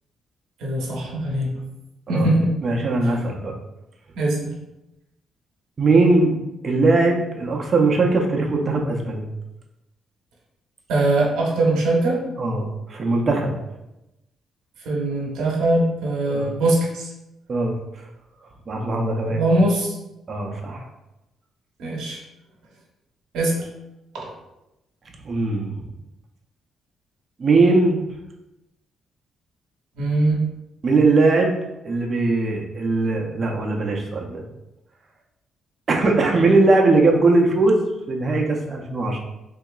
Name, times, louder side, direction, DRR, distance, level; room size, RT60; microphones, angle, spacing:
voice 1, 0.6-1.5 2.1-2.5 4.1-4.5 10.9-12.2 14.8-17.1 19.3-19.9 21.8-22.2 23.3-23.7 24.2-24.3 30.0-30.4, right 2 dB, 85° right, -3 dB, 1.0 m, -21 dB
voice 2, 2.6-3.5 5.8-6.3 6.6-9.3 12.4-13.5 16.3-16.5 17.5-17.7 18.7-19.4 20.3-20.9 25.2-25.7 27.4-28.0 30.8-31.6 31.8-34.4 35.9-37.8 38.1-39.2, right 3 dB, 40° right, 0 dB, 0.7 m, -20 dB
3.8 x 2.8 x 2.4 m, 0.93 s
cardioid pair, 90°, 0 cm